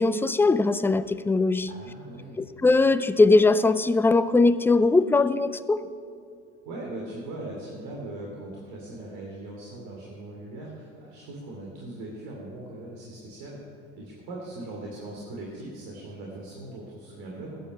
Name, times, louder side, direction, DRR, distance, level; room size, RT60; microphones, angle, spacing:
voice 1, 0.0-1.7 2.4-5.8, left 3 dB, 5° left, 13 dB, 0.4 m, -20 dB
voice 2, 1.7-2.5 6.6-13.6 14.0-17.6, right 2 dB, 60° right, -3 dB, 3.0 m, -40 dB
14.5 x 9.6 x 5.6 m, 2.4 s
hypercardioid pair, 75°, 39 cm